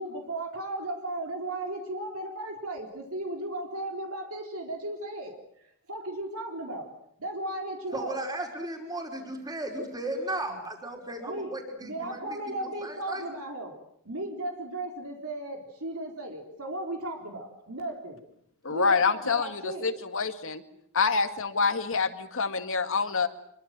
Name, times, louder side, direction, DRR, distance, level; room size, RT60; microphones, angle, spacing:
voice 1, 0.0-5.4 5.9-6.9 7.2-8.2 10.5-10.7 11.2-11.6 11.8-13.7 14.1-18.2 18.7-19.9, right 1 dB, 70° right, 2 dB, 3.9 m, -35 dB
voice 2, 7.9-12.2 12.8-13.3, right 1 dB, 20° right, 2 dB, 5.0 m, -35 dB
voice 3, 18.6-20.6 20.9-23.3, left 4 dB, 65° left, 8 dB, 2.2 m, -26 dB
26.0 x 24.0 x 7.7 m, 0.69 s
head